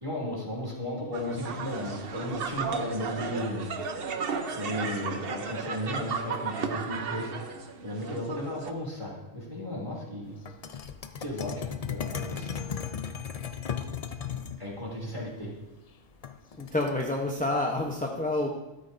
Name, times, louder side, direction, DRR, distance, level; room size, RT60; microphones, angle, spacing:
voice 1, 0.0-3.7 4.5-10.4 11.2-12.7 14.6-15.5, left 1 dB, 25° right, -5 dB, 2.9 m, -35 dB
sound 1, 1.1-8.7, right 5 dB, 50° right, 0.9 m, -34 dB
sound 2, 10.4-14.6 16.2-17.0, left 7 dB, 50° left, 0.4 m, -35 dB
voice 2, 16.6-18.5, left 2 dB, 10° left, -1 dB, 0.7 m, -28 dB
13.0 x 12.0 x 2.7 m, 1.0 s
omnidirectional pair, 1.3 m